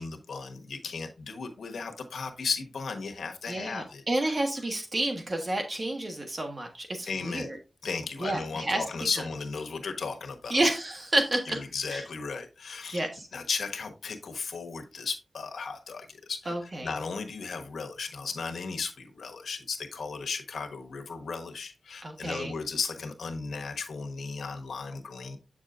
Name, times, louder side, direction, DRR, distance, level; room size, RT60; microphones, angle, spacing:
voice 1, 0.0-4.0 7.1-7.5 7.8-10.6 11.5-16.5 16.8-25.4, left 4 dB, 90° left, 4 dB, 1.2 m, -35 dB
voice 2, 3.5-7.6 8.2-8.8 10.5-11.6 11.9-12.0 12.9-13.3 16.5-16.9 22.0-22.5, right 1 dB, 35° right, 4 dB, 1.3 m, -30 dB
8.4 x 6.3 x 2.5 m, 0.28 s
wide cardioid pair, 85°, 0 cm